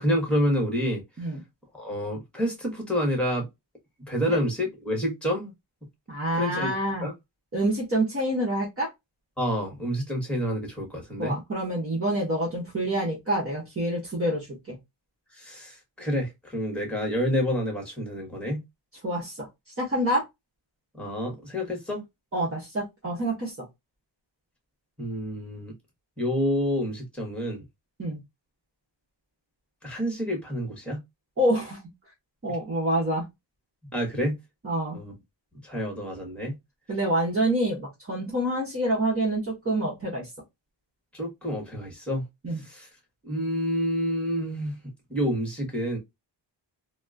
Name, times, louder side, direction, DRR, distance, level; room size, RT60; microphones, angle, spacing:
voice 1, 0.0-1.0 1.8-3.5 4.1-5.5 6.3-7.1 9.4-11.4 15.4-18.6 20.9-22.0 25.0-25.7 26.2-27.6 29.8-31.0 33.9-34.3 34.9-35.1 35.6-36.5 41.1-42.2 42.6-42.9 43.2-44.8 45.1-46.0, equal, 5° left, 1.3 m, -28 dB
voice 2, 6.1-7.1 7.5-8.9 11.2-14.8 19.0-19.5 19.8-20.2 22.3-23.5 28.0-28.2 31.4-31.8 32.4-33.2 34.6-35.0 36.9-40.3 42.4-42.6, right 1 dB, 30° right, 1.1 m, -27 dB
4.1 x 2.2 x 2.4 m
wide cardioid pair, 140°, 45 cm